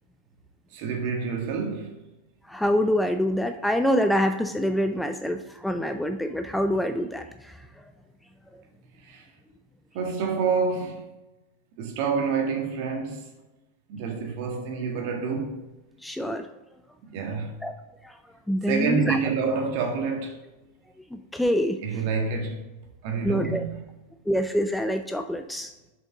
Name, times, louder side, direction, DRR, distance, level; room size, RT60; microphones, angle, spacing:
voice 1, 0.7-2.0 9.0-9.3 9.9-11.0 11.8-13.2 13.9-15.6 17.0-17.5 18.6-20.4 21.8-22.6 23.0-23.8, right 5 dB, 50° right, 1.6 m, -28 dB
voice 2, 2.5-7.5 16.0-16.5 17.6-17.7 18.0-18.1 18.5-19.2 21.1-21.8 23.2-23.6 24.3-25.7, equal, 5° left, 0.4 m, -25 dB
7.2 x 5.2 x 3.7 m
figure-of-eight pair, 90°, 0 cm